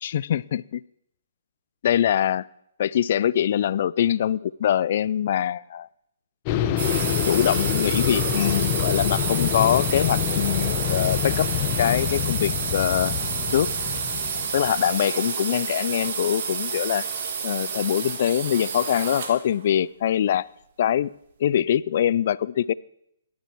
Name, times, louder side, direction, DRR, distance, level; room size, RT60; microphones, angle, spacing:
voice 1, 0.0-0.8 1.8-2.5 2.8-5.9 7.2-11.5 11.8-13.1 13.5-13.7 14.5-17.1 17.4-20.5 20.8-21.1 21.4-22.7, left 10 dB, 50° left, 20 dB, 0.4 m, -23 dB
sound 1, 6.5-14.8, left 12 dB, 35° left, 1.0 m, -26 dB
sound 2, 6.8-19.5, right 6 dB, 55° right, 2.7 m, -29 dB
17.5 x 12.0 x 4.6 m, 0.76 s
hypercardioid pair, 145°, 0 cm